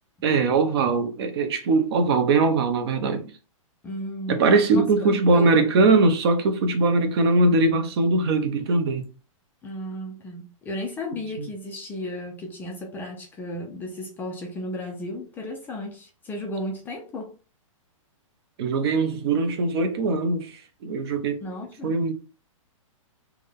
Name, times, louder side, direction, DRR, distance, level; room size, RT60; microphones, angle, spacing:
voice 1, 0.2-3.3 4.3-9.1 11.4-11.5 18.6-21.4 21.8-22.1, right 3 dB, 50° right, 0.8 m, -21 dB
voice 2, 3.8-5.7 9.6-17.4 21.4-22.0, left 1 dB, 10° left, 0.4 m, -34 dB
3.5 x 2.2 x 3.5 m
hypercardioid pair, 150°, 17 cm